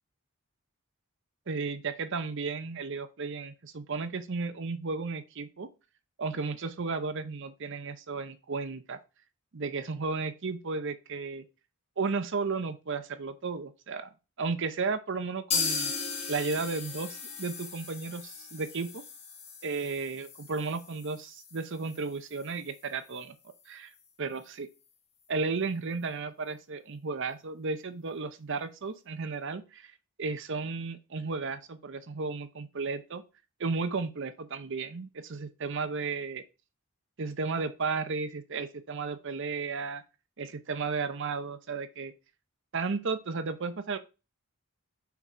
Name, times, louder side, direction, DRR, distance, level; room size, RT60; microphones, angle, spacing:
voice 1, 1.5-5.7 6.2-9.0 9.5-11.4 12.0-14.1 14.4-15.9 16.3-19.0 19.6-23.4 23.7-23.9 24.2-24.7 25.3-29.9 30.2-33.2 33.6-36.4 37.2-40.0 40.4-42.1 42.7-44.0, right 4 dB, 55° right, 10 dB, 0.7 m, -34 dB
sound 1, 15.5-23.2 23.5-23.6 23.9-24.0 24.5-24.6, left 5 dB, 30° left, 1.4 m, -37 dB
5.9 x 4.2 x 4.2 m, 0.29 s
head